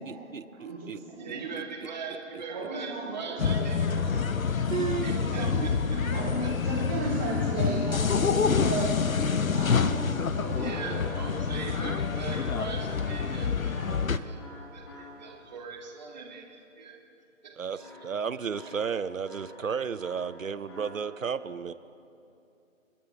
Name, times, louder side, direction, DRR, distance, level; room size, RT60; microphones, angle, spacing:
voice 1, 0.0-1.0 1.5-1.6 2.3-2.4 4.7-5.1 5.6-5.7 10.8-11.0 13.9-14.1 17.6-21.7, right 6 dB, 70° right, 14 dB, 0.8 m, -33 dB
voice 2, 0.5-1.5 2.5-4.0 4.6-5.7 6.1-9.0 9.5-10.8, right 2 dB, 10° right, -7 dB, 0.8 m, -36 dB
voice 3, 1.2-4.0 5.0-6.5 10.5-16.9 17.4-17.5, right 5 dB, 30° right, 0 dB, 2.0 m, -41 dB
sound 1, 3.2-8.5 10.3-15.6 17.8-21.1, left 1 dB, 20° left, 1.5 m, -49 dB
sound 2, 3.4-14.2, left 5 dB, 80° left, 0.8 m, -27 dB
30.0 x 10.5 x 2.9 m, 2.8 s
figure-of-eight pair, 150°, 40 cm